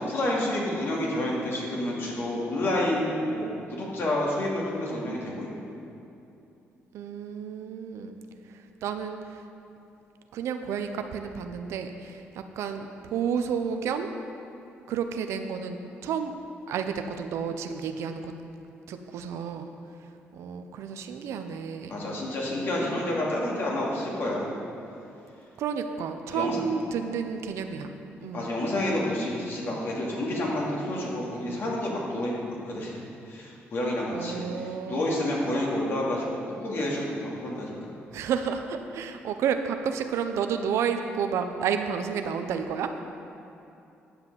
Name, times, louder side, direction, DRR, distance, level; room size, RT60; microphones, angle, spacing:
voice 1, 0.0-5.5 21.9-24.5 26.3-26.6 28.3-33.0 33.3-36.3 36.6-37.9, left 1 dB, 55° left, -4 dB, 2.7 m, -29 dB
voice 2, 6.9-8.2 8.5-9.4 10.3-14.1 14.9-16.3 16.7-18.3 18.9-19.7 20.3-22.0 25.6-27.9 28.2-28.5 34.1-35.0 38.1-42.9, right 7 dB, 80° right, 7 dB, 0.7 m, -31 dB
9.8 x 5.8 x 6.9 m, 2.7 s
cardioid pair, 80°, 5 cm